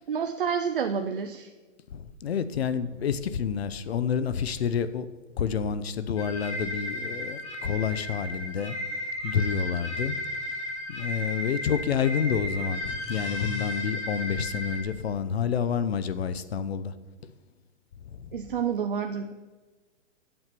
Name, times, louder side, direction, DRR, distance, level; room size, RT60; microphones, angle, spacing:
voice 1, 0.1-1.5 18.3-19.3, right 7 dB, 45° right, 0.5 m, -29 dB
voice 2, 1.9-5.1 5.4-8.8 9.2-10.2 10.9-16.9 18.1-18.3, left 7 dB, 55° left, 0.7 m, -29 dB
sound 1, 6.2-14.8, left 1 dB, 25° left, 1.3 m, -34 dB
8.2 x 7.8 x 5.9 m
hypercardioid pair, 180°, 38 cm